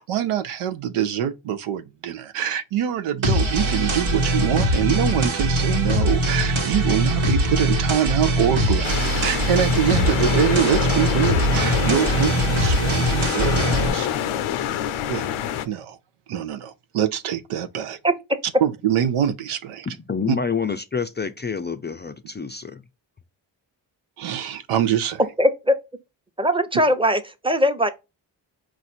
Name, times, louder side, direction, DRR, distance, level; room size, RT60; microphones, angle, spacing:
voice 1, 0.0-14.1 15.1-15.3 15.6-16.0 16.3-18.0 18.6-19.9 20.3-20.4 24.2-25.2, right 10 dB, 85° right, 0.6 m, -24 dB
sound 1, 3.2-13.9, right 1 dB, 70° right, 1.3 m, -22 dB
sound 2, 8.8-15.7, left 10 dB, 80° left, 0.6 m, -26 dB
voice 2, 18.0-18.4 25.4-25.8 26.4-27.9, equal, 10° right, 0.8 m, -20 dB
voice 3, 19.9-22.6, left 5 dB, 25° left, 0.4 m, -27 dB
4.6 x 2.5 x 4.2 m
supercardioid pair, 40°, 49 cm